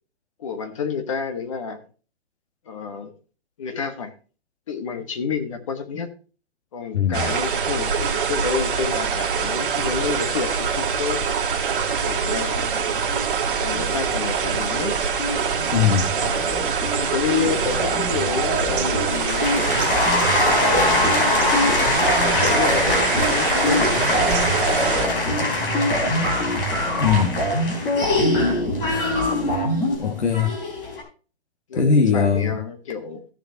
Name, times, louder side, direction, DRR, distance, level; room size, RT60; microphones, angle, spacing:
voice 1, 0.4-1.8 2.7-3.1 3.6-4.1 4.7-6.1 6.7-11.2 12.0-12.8 13.6-15.0 16.2-16.4 16.9-19.7 20.4-21.8 22.2-24.6 31.7-33.2, left 5 dB, 30° left, 7 dB, 1.3 m, -29 dB
sound 1, 7.1-25.1, right 6 dB, 50° right, 2.4 m, -24 dB
sound 2, 13.1-14.9 15.2-30.0, equal, 10° left, 1.6 m, -27 dB
voice 2, 15.7-16.1 27.0-27.4 30.0-30.5 31.7-32.6, left 6 dB, 85° left, 4 dB, 2.0 m, -20 dB
sound 3, 19.1-31.0, left 2 dB, 55° left, 4.0 m, -23 dB
16.0 x 6.9 x 2.8 m, 0.37 s
hypercardioid pair, 175°, 33 cm